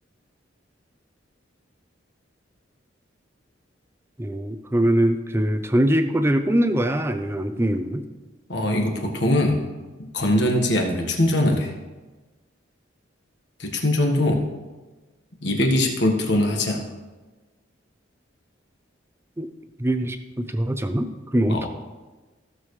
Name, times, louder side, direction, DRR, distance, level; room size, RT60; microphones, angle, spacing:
voice 1, 4.2-8.0 19.4-19.5 19.8-21.7, right 1 dB, 15° right, 8 dB, 0.5 m, -22 dB
voice 2, 8.5-9.6 10.1-11.7 13.6-14.4 15.4-16.8 21.5-21.7, left 1 dB, 60° left, 2 dB, 1.5 m, -21 dB
16.0 x 6.9 x 3.2 m, 1.2 s
head